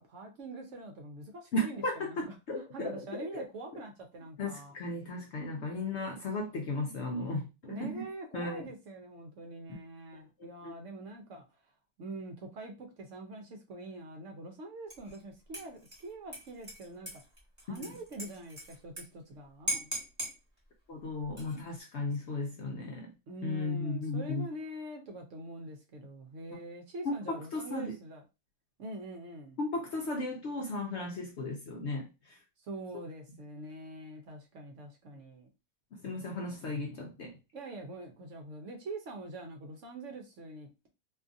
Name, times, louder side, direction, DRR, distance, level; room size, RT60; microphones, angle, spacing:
voice 1, 0.0-4.8 7.6-11.6 12.0-17.2 17.6-19.8 22.1-22.2 23.3-28.2 28.8-29.6 32.6-35.5 37.5-40.9, right 2 dB, 65° right, 0.8 m, -44 dB
voice 2, 1.5-2.9 3.3-3.4 4.4-8.0 8.3-8.7 10.6-10.7 17.7-17.8 19.7-19.8 20.9-23.1 23.4-24.4 27.0-28.0 29.6-32.4 36.0-37.3, left 2 dB, 65° left, 0.7 m, -35 dB
Dishes pots and pans / Liquid, 14.9-15.2 15.5-19.0 19.3-19.4 19.7-20.3 21.2-21.7, equal, 15° right, 1.2 m, -39 dB
2.6 x 2.4 x 2.5 m
omnidirectional pair, 1.5 m